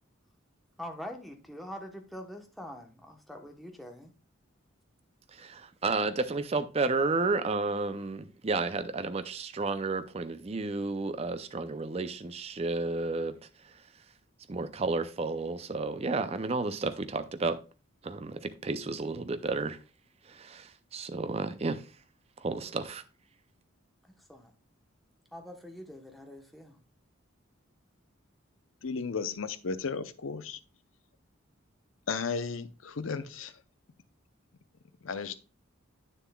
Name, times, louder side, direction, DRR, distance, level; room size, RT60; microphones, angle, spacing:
voice 1, 0.8-4.1 24.3-24.5 25.3-26.8, equal, ahead, 1.0 m, -44 dB
voice 2, 5.3-13.4 14.5-17.6 18.0-19.8 20.3-21.8 22.4-23.0, right 3 dB, 30° right, 0.5 m, -32 dB
voice 3, 28.8-30.6 32.1-33.5 35.0-35.4, left 5 dB, 75° left, 0.7 m, -34 dB
9.3 x 6.8 x 2.3 m
head